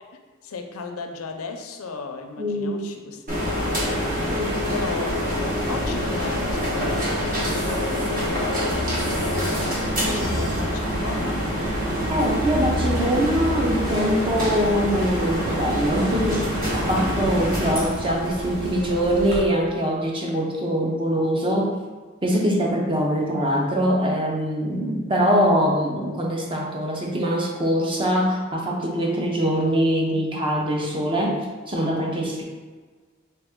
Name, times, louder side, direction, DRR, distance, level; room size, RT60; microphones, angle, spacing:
voice 1, 0.4-3.2 3.5-4.4 4.7-11.4, left 4 dB, 80° left, 5 dB, 0.5 m, -35 dB
voice 2, 2.4-2.9 4.3-4.5 10.0-10.3 12.1-16.5 16.7-21.7 22.2-31.4 31.7-32.4, equal, 25° right, -1 dB, 0.6 m, -23 dB
sound 1, 3.3-19.4, equal, 40° right, 1.0 m, -25 dB
4.0 x 3.2 x 3.6 m, 1.4 s
head